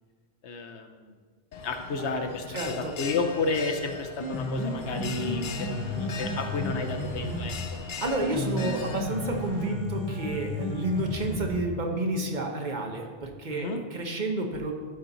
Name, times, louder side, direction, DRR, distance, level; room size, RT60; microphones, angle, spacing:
voice 1, 0.4-1.1 1.6-7.8 13.5-13.8, left 3 dB, 80° left, 5 dB, 1.1 m, -32 dB
Bell, 1.5-9.0, left 5 dB, 55° left, 0.6 m, -40 dB
voice 2, 2.5-2.9 8.0-14.7, right 1 dB, 45° right, 2 dB, 1.0 m, -30 dB
Piano, 4.0-12.0, left 1 dB, 25° left, 1.0 m, -33 dB
Rain, 4.5-9.7, equal, 25° right, 1.5 m, -48 dB
13.0 x 4.4 x 3.9 m, 1.5 s
omnidirectional pair, 1.1 m